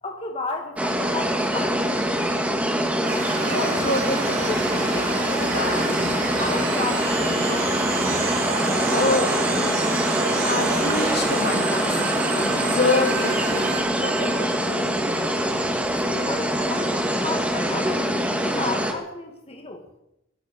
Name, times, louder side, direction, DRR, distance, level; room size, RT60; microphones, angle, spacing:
voice 1, 0.0-2.4 6.4-7.8 16.0-19.8, left 3 dB, 30° left, 2 dB, 1.9 m, -33 dB
sound 1, 0.8-18.9, equal, 5° right, 1.9 m, -24 dB
sound 2, 1.4-17.7, right 5 dB, 75° right, 3.0 m, -34 dB
sound 3, 3.0-13.8, right 3 dB, 45° right, 4.8 m, -31 dB
voice 2, 3.4-6.2 8.9-14.9, left 3 dB, 55° left, 5 dB, 2.4 m, -28 dB
17.5 x 12.0 x 6.8 m, 0.83 s
head